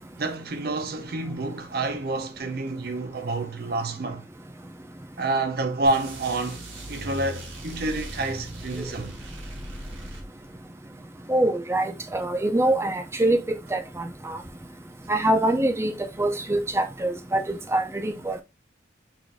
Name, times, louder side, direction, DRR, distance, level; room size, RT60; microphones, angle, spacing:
voice 1, 0.2-4.2 5.2-6.6 6.9-9.2, right 2 dB, 50° right, 0.6 m, -28 dB
sound 1, 5.8-10.7, right 1 dB, 90° right, 1.7 m, -38 dB
voice 2, 11.3-14.4 15.1-15.9 16.2-18.4, right 1 dB, 15° right, 0.5 m, -24 dB
6.2 x 2.6 x 3.3 m
head